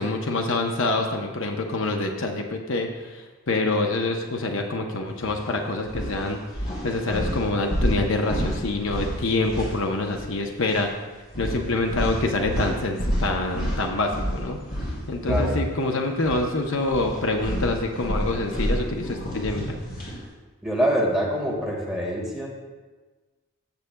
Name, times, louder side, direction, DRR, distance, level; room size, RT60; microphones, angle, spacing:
voice 1, 0.0-10.9 11.4-14.6 15.1-19.8, left 2 dB, 60° left, 3 dB, 0.8 m, -26 dB
sound 1, 5.2-5.4 5.9-10.3 10.6-10.8 11.3-16.5 16.8-20.2, equal, 45° left, 3.2 m, -29 dB
voice 2, 20.6-22.5, equal, ahead, -4 dB, 1.8 m, -25 dB
15.0 x 7.6 x 2.3 m, 1.3 s
head